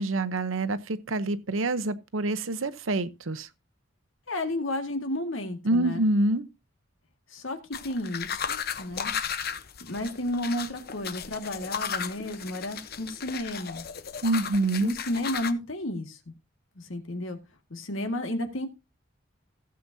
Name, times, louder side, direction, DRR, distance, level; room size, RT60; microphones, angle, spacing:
voice 1, 0.0-3.5 5.6-6.5 14.2-15.0, right 2 dB, 90° right, 0.9 m, -26 dB
voice 2, 4.3-6.0 7.3-9.1 9.8-13.8 14.8-16.3 16.8-17.4 17.7-18.7, left 1 dB, 80° left, 1.9 m, -32 dB
sound 1, 7.7-15.5, left 7 dB, 50° left, 0.9 m, -35 dB
16.0 x 7.7 x 2.7 m
head